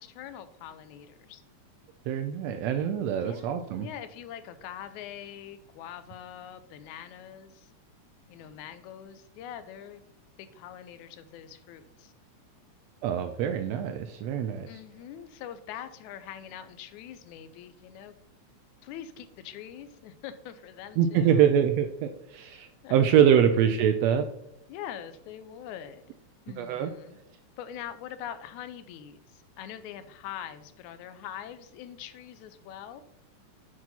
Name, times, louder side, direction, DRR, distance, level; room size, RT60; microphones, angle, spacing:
voice 1, 0.0-1.4 3.2-7.7 8.3-10.0 10.4-12.1 14.7-18.1 18.8-21.5 22.8-23.5 24.7-26.1 26.5-27.2 27.6-33.0, left 10 dB, 85° left, 12 dB, 2.0 m, -43 dB
voice 2, 2.1-3.9 13.0-14.7 21.0-24.3 26.6-26.9, right 9 dB, 80° right, 8 dB, 1.5 m, -24 dB
8.6 x 6.1 x 4.1 m, 0.81 s
omnidirectional pair, 3.4 m